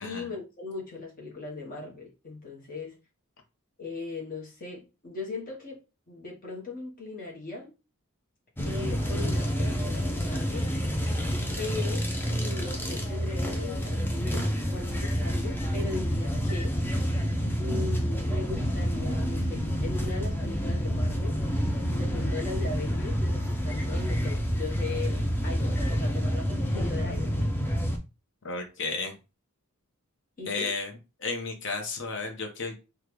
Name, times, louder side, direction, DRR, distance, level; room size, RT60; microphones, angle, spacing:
voice 1, 0.0-3.0 3.8-5.8 6.1-7.7 8.6-10.7 11.6-16.8 17.5-21.4 21.9-27.5 30.4-30.7, left 3 dB, 40° left, 1.0 m, -39 dB
sound 1, 8.6-28.0, equal, 10° left, 0.5 m, -28 dB
voice 2, 28.4-29.2 30.5-30.9 31.2-32.7, left 4 dB, 55° left, 0.8 m, -33 dB
3.7 x 2.3 x 3.0 m
head